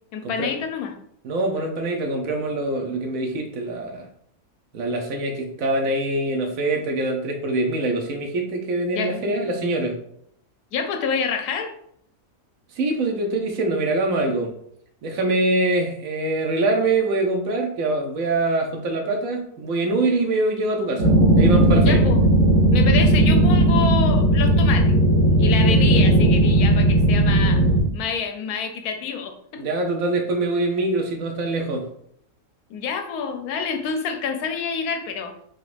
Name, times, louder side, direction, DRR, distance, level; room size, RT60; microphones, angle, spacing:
voice 1, 0.1-0.9 8.9-9.4 10.7-11.7 21.8-22.2 22.7-24.9 25.4-27.6 27.9-29.6 32.7-35.3, left 6 dB, 90° left, 5 dB, 1.1 m, -27 dB
voice 2, 1.2-4.1 4.7-9.9 12.7-14.5 15.0-22.0 29.6-31.8, right 2 dB, 70° right, 3 dB, 1.1 m, -24 dB
sound 1, 21.0-27.8, right 1 dB, 90° right, 1.9 m, -16 dB
5.1 x 3.2 x 2.5 m, 0.69 s
omnidirectional pair, 1.5 m